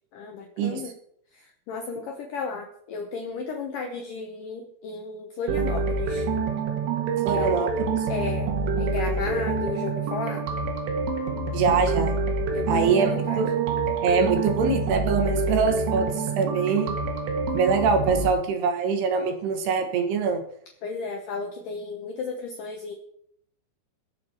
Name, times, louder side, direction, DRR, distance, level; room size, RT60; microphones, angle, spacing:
voice 1, 0.1-0.9 1.3-6.3 7.3-7.6 8.1-10.5 12.5-13.4 20.8-22.9, left 4 dB, 80° left, 3 dB, 1.9 m, -33 dB
sound 1, 5.5-18.3, right 4 dB, 90° right, 4.5 m, -27 dB
voice 2, 7.2-8.1 11.5-12.1 12.7-13.5 14.0-16.9 17.5-20.4, right 5 dB, 65° right, 5 dB, 3.2 m, -24 dB
21.5 x 7.4 x 4.5 m, 0.68 s
omnidirectional pair, 5.6 m